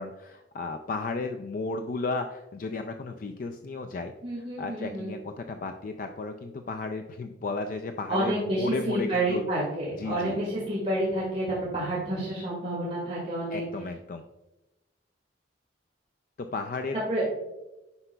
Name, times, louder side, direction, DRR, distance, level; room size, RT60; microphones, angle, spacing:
voice 1, 0.0-9.5 10.0-10.4 13.5-14.2 16.4-17.0, left 3 dB, 45° left, 6 dB, 0.3 m, -34 dB
voice 2, 4.2-5.1 8.1-13.6 17.1-17.2, right 1 dB, 35° right, -7 dB, 1.9 m, -29 dB
9.5 x 5.8 x 2.2 m, 1.0 s
head